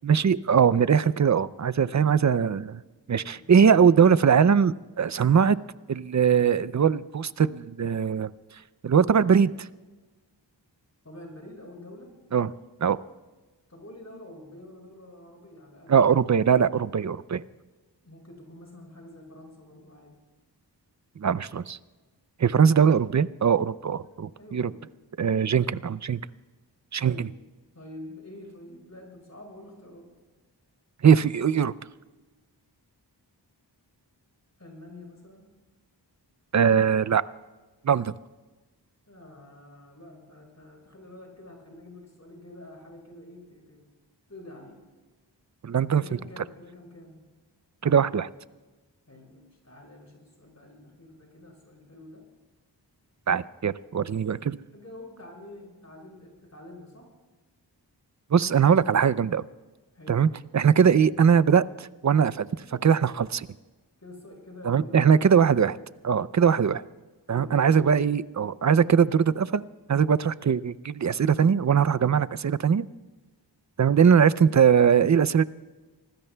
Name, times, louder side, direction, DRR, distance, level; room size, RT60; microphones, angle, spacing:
voice 1, 0.0-2.8 3.1-5.6 5.9-8.3 8.8-9.7 12.3-12.5 12.8-13.0 15.9-17.4 21.2-21.8 22.4-24.7 25.2-26.2 26.9-27.3 31.0-31.7 36.5-37.2 37.8-38.1 45.6-46.0 47.8-48.3 53.3-54.6 58.3-59.4 60.1-63.5 64.7-65.8 66.0-66.8 67.3-69.6 69.9-72.9 73.8-75.4, right 7 dB, 45° right, 17 dB, 0.4 m, -21 dB
voice 2, 1.8-2.3 3.2-3.5 11.0-12.1 13.7-16.1 18.0-20.2 24.4-24.8 27.0-27.3 27.7-30.1 34.6-35.5 39.1-43.8 44.3-44.8 45.9-47.2 49.1-52.2 54.0-54.2 54.7-57.1 59.9-60.3 64.0-65.6 67.3-67.6, left 1 dB, 40° left, -1 dB, 6.0 m, -47 dB
26.0 x 19.0 x 2.2 m, 1.2 s
wide cardioid pair, 80°, 43 cm